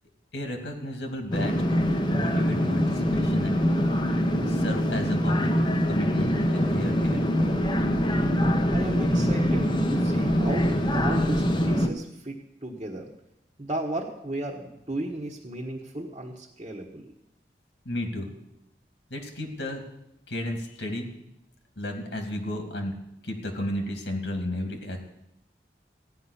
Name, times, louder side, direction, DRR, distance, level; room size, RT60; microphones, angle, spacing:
voice 1, 0.3-3.6 4.5-5.5 5.8-7.2 17.8-18.3 19.1-19.8 20.3-21.2 21.8-22.9 23.2-25.0, left 1 dB, 85° left, 4 dB, 2.4 m, -33 dB
sound 1, 1.3-11.9, equal, 25° left, 0.9 m, -24 dB
voice 2, 8.7-13.1 13.6-17.1, right 1 dB, 30° right, -4 dB, 1.3 m, -35 dB
15.5 x 5.6 x 9.9 m, 0.84 s
head